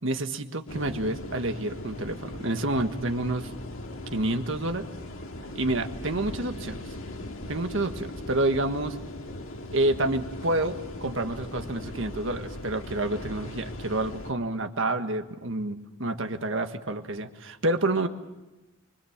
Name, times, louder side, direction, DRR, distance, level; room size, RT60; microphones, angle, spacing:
voice 1, 0.0-3.5 4.1-4.8 5.5-6.8 7.5-9.0 9.7-18.1, right 2 dB, 70° right, 7 dB, 1.6 m, -28 dB
sound 1, 0.7-14.3, left 1 dB, 80° left, 2.2 m, -39 dB
25.0 x 25.0 x 7.4 m, 1.1 s
head